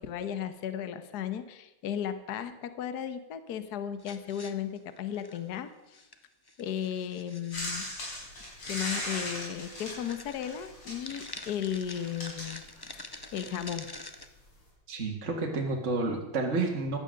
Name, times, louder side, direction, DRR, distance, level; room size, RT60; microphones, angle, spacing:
voice 1, 0.0-6.0 6.6-7.8 8.7-12.6 12.9-13.0 13.3-13.9, left 9 dB, 55° left, 11 dB, 1.5 m, -35 dB
sound 1, 4.0-5.6 5.9-6.2 6.5-8.1 9.0-9.1 9.5-9.7 10.0-14.3, left 2 dB, 30° left, 0.4 m, -46 dB
sound 2, 7.5-13.2 14.2-14.3, left 1 dB, 85° left, 5.6 m, -38 dB
voice 2, 14.9-17.0, right 3 dB, 35° right, 0 dB, 2.0 m, -30 dB
16.0 x 11.5 x 6.5 m, 1.0 s
omnidirectional pair, 2.3 m